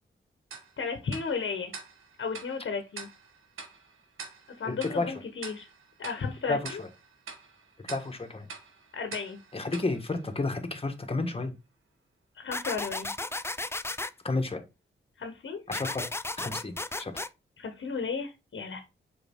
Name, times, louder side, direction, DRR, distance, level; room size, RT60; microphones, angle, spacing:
Tick-tock, 0.5-11.0, right 5 dB, 85° right, 1.5 m, -47 dB
voice 1, 0.8-1.7 2.2-3.1 4.6-5.7 6.0-6.8 8.9-9.4 12.3-13.1 15.2-15.6 17.6-18.8, left 5 dB, 70° left, 6 dB, 1.3 m, -34 dB
voice 2, 4.6-5.1 6.5-6.9 7.8-8.5 9.5-11.5 14.2-14.6 15.7-16.0 16.4-17.1, left 3 dB, 30° left, 6 dB, 1.7 m, -31 dB
sound 1, 12.5-14.1 15.7-17.3, left 2 dB, 10° left, 0.5 m, -34 dB
7.0 x 4.8 x 3.7 m, 0.26 s
cardioid pair, 65°, 20 cm